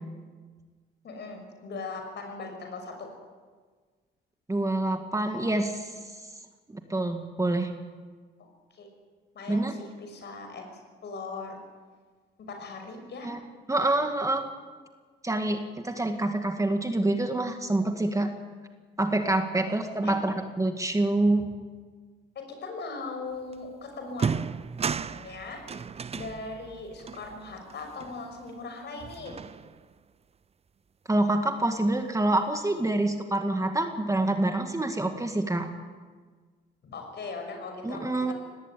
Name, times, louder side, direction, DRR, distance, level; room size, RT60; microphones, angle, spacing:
voice 1, 1.0-3.1 8.7-8.9 9.3-11.6 12.5-13.3 20.0-20.1 22.3-24.3 25.1-25.6 26.1-29.4 36.8-38.3, left 3 dB, 60° left, 4 dB, 6.3 m, -39 dB
voice 2, 4.5-5.9 6.7-7.7 9.5-9.7 13.2-13.4 13.7-14.4 15.2-18.3 19.0-21.5 31.1-35.7 37.8-38.3, right 2 dB, 15° right, 5 dB, 2.0 m, -26 dB
sound 1, 23.5-23.7 24.1-28.7 29.0-30.0, right 6 dB, 30° right, 0.6 m, -35 dB
19.0 x 17.5 x 9.2 m, 1.5 s
cardioid pair, 90°, 20 cm